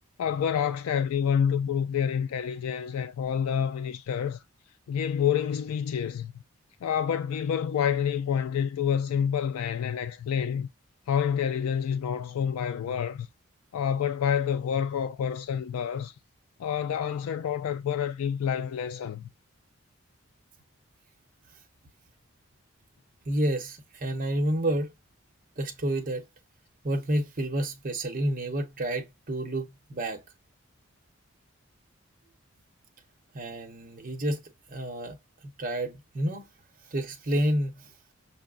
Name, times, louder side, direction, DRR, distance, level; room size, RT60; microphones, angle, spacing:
voice 1, 0.2-4.4 4.9-6.3 6.8-10.7 11.1-13.3 13.7-16.1 16.6-19.3, left 8 dB, 85° left, 0.3 m, -28 dB
voice 2, 23.3-24.9 25.6-26.3 26.8-30.2 33.3-34.4 34.7-35.2 35.6-36.5 36.9-38.1, right 1 dB, 40° right, 0.9 m, -29 dB
6.1 x 2.1 x 2.4 m
head